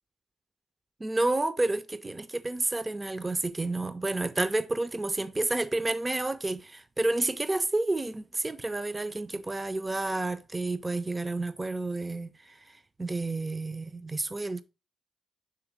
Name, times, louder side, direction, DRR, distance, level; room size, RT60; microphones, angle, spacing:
voice 1, 1.0-14.6, right 2 dB, 25° right, 0.6 m, -30 dB
7.0 x 3.5 x 4.6 m
supercardioid pair, 55°, 0 cm